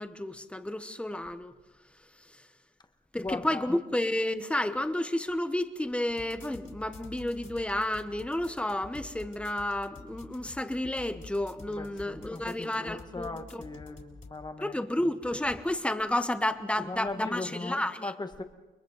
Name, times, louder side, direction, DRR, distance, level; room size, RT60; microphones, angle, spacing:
voice 1, 0.0-1.5 2.3-2.4 3.1-13.6 14.6-18.1, left 1 dB, 5° left, 1.0 m, -31 dB
voice 2, 3.2-3.7 11.7-14.8 16.8-18.4, left 3 dB, 20° left, 1.5 m, -38 dB
sound 1, 6.1-14.4, left 3 dB, 40° left, 3.8 m, -49 dB
29.5 x 22.5 x 4.0 m
wide cardioid pair, 130°, 20 cm